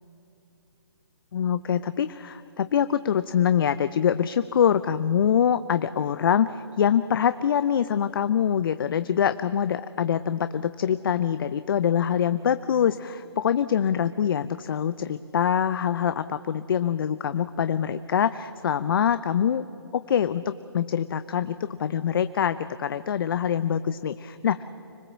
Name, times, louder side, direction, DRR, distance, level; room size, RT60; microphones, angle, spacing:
voice 1, 1.3-19.6 19.9-24.6, left 8 dB, 55° left, 13 dB, 0.6 m, -24 dB
25.5 x 19.5 x 7.3 m, 2.8 s
figure-of-eight pair, 135°, 14 cm